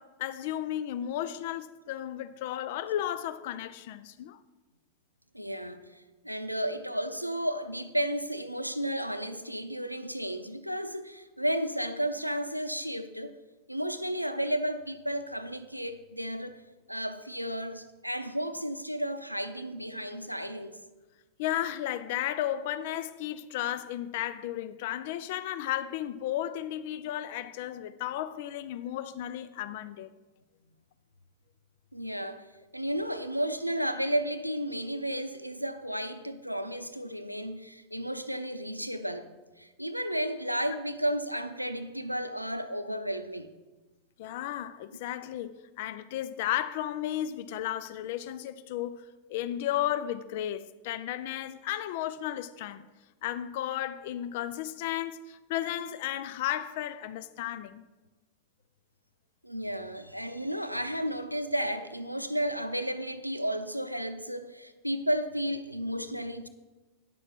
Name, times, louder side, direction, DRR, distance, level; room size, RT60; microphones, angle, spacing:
voice 1, 0.0-4.4 21.4-30.1 44.2-49.0 49.3-52.9 53.2-57.8, left 12 dB, 50° left, 0.4 m, -34 dB
voice 2, 5.3-13.3 13.7-16.6 16.9-20.8 31.9-32.5 32.7-39.3 39.6-43.5 59.4-66.5, equal, 90° right, 0.6 m, -33 dB
9.7 x 6.5 x 5.9 m
figure-of-eight pair, 90°, 0 cm